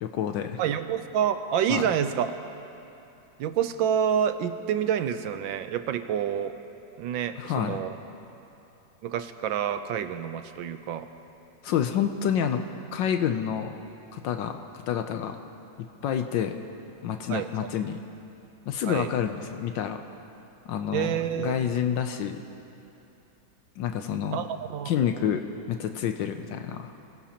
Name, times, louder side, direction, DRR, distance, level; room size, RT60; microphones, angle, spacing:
voice 1, 0.0-0.6 1.7-1.9 7.4-7.8 11.6-12.6 12.9-13.8 14.1-14.6 14.9-15.4 16.0-16.5 17.0-18.0 18.7-20.0 20.6-22.4 23.8-24.4 24.9-25.4 25.7-26.9, left 9 dB, 80° left, 6 dB, 1.4 m, -28 dB
voice 2, 0.6-2.3 3.4-6.5 7.0-8.0 9.0-11.1 17.3-17.7 18.9-19.1 20.9-21.8 24.3-25.4, right 9 dB, 85° right, 9 dB, 1.5 m, -28 dB
26.5 x 17.0 x 2.9 m, 2.8 s
omnidirectional pair, 2.1 m